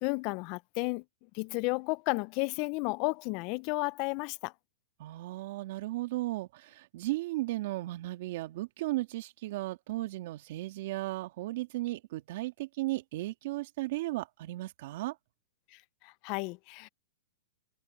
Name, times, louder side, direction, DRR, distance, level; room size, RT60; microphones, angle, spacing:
voice 1, 0.0-1.0 1.3-4.5 15.7-16.9, left 27 dB, 45° left, 0.5 m, -33 dB
voice 2, 5.0-15.2, right 18 dB, 55° right, 2.6 m, -35 dB
hypercardioid pair, 130°, 0 cm